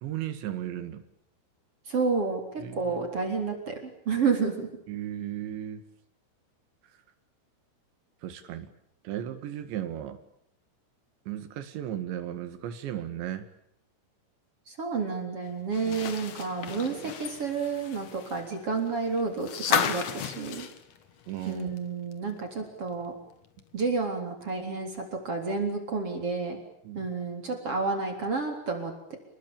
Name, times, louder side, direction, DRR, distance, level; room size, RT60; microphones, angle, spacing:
voice 1, 0.0-1.0 2.6-3.0 4.9-5.9 8.2-8.7 9.0-10.2 11.3-13.5 15.9-16.0 16.9-17.1 21.3-21.7 26.8-27.1, right 11 dB, 70° right, 10 dB, 4.1 m, -35 dB
voice 2, 1.9-2.4 2.7-4.7 14.7-20.7 21.5-23.1 23.7-26.6 26.9-29.2, right 4 dB, 30° right, 3 dB, 4.2 m, -30 dB
sound 1, 15.7-21.8 22.1-22.2 23.6-23.7, left 7 dB, 70° left, 1.6 m, -33 dB
29.5 x 20.0 x 8.9 m, 0.72 s
omnidirectional pair, 5.6 m